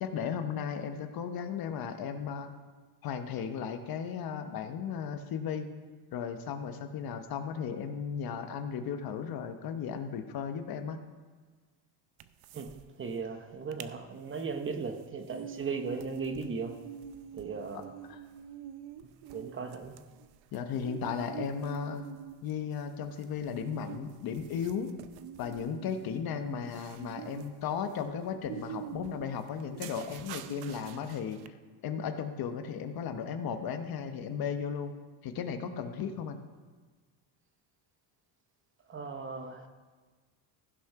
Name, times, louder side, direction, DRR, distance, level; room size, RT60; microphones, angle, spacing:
voice 1, 0.0-2.5 3.0-5.7 6.1-11.0 17.7-18.2 20.5-22.1 22.4-24.9 25.4-31.4 31.8-34.9 35.2-36.4, left 7 dB, 55° left, 8 dB, 1.0 m, -35 dB
sound 1, 12.2-12.8 13.1-13.2 13.5-13.9 14.3-31.5, right 10 dB, 60° right, 0.7 m, -46 dB
voice 2, 13.0-16.8 17.3-17.9 19.3-20.0 38.9-39.7, right 5 dB, 30° right, 7 dB, 0.9 m, -37 dB
15.0 x 6.0 x 5.7 m, 1.4 s
cardioid pair, 145°, 44 cm